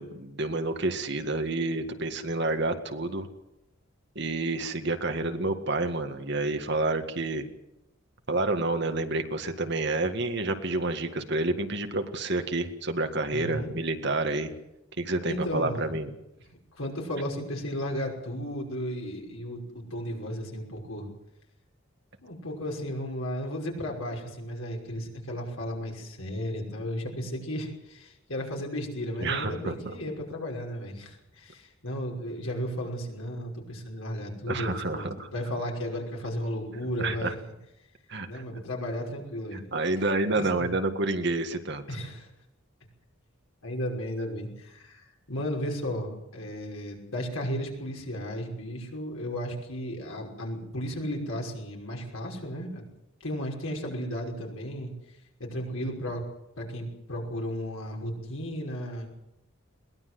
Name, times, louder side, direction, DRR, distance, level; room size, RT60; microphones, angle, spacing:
voice 1, 0.0-3.3 4.2-7.5 8.3-14.5 15.0-16.1 29.2-30.0 34.5-35.3 37.0-37.3 38.1-38.4 39.5-41.8, right 2 dB, 55° right, 7 dB, 1.9 m, -29 dB
voice 2, 13.3-13.7 15.3-15.9 16.8-21.1 22.2-37.4 38.3-39.6 40.3-40.7 41.9-42.3 43.6-52.8 53.2-54.9 55.4-56.2 56.6-59.1, equal, 80° left, 1 dB, 5.8 m, -34 dB
22.0 x 19.0 x 7.9 m, 0.88 s
head